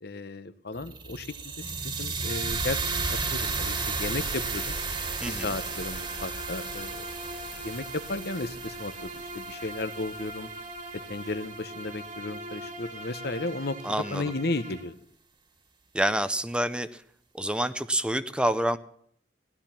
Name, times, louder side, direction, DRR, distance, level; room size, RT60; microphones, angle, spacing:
voice 1, 0.0-4.7 5.3-7.1 7.6-10.5 11.1-14.9, left 2 dB, 65° left, 12 dB, 1.1 m, -34 dB
sound 1, 0.8-10.9, right 4 dB, 30° right, 2.0 m, -34 dB
Bowed string instrument, 2.2-14.9, right 1 dB, 45° right, 1.9 m, -41 dB
voice 2, 5.2-5.5 13.8-14.3 15.9-16.9 17.3-18.8, right 1 dB, 5° right, 12 dB, 0.6 m, -27 dB
16.5 x 12.5 x 5.8 m, 0.63 s
head